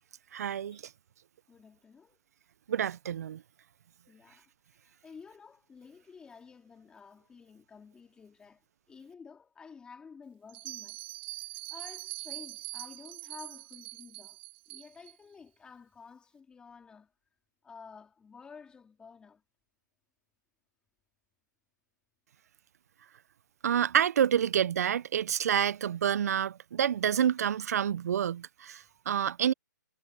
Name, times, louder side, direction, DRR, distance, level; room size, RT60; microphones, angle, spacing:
voice 1, 0.3-0.8 2.7-3.4 23.6-29.5, right 9 dB, 50° right, 0.7 m, -28 dB
voice 2, 1.5-2.2 4.1-11.0 11.4-14.4 14.7-17.1 17.6-19.4, left 5 dB, 10° left, 3.3 m, -52 dB
Bell, 10.5-15.1, right 20 dB, 30° right, 2.1 m, -43 dB
hypercardioid pair, 150°, 10 cm